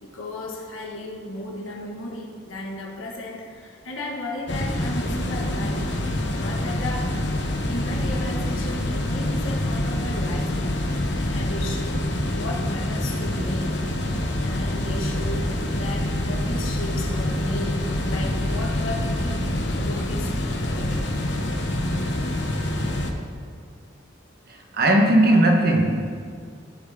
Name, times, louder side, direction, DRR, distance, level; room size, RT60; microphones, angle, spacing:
voice 1, 0.0-5.9 6.3-7.4 7.7-10.8 11.3-12.1 12.3-13.8 14.4-20.4 20.7-21.1, left 1 dB, 90° left, -2 dB, 1.9 m, -35 dB
sound 1, 4.5-23.1, left 1 dB, 60° left, 1.0 m, -26 dB
voice 2, 24.5-26.2, right 1 dB, 50° right, 2 dB, 1.3 m, -18 dB
16.5 x 7.2 x 3.8 m, 2.1 s
head